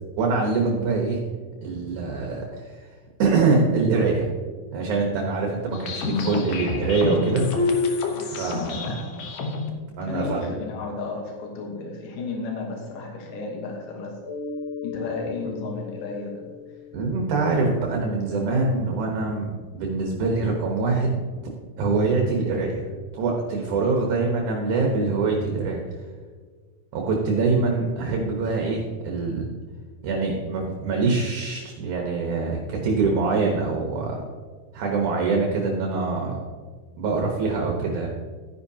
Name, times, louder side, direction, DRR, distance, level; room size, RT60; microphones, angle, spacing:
voice 1, 0.2-1.2 1.6-2.8 3.2-4.3 4.7-7.5 8.4-8.9 10.0-10.5 16.9-21.2 21.8-22.8 23.1-25.8 26.9-29.5 30.0-34.2 34.7-36.4 37.0-38.1, right 3 dB, 70° right, 0 dB, 2.6 m, -24 dB
sound 1, 5.7-9.7, left 3 dB, 65° left, 2.2 m, -27 dB
voice 2, 6.6-7.1 8.5-9.2 10.0-14.2 14.8-16.5, left 3 dB, 85° left, 1 dB, 2.9 m, -33 dB
Mallet percussion, 14.2-18.7, left 6 dB, 15° left, 1.3 m, -38 dB
13.0 x 10.5 x 2.8 m, 1.5 s
omnidirectional pair, 3.7 m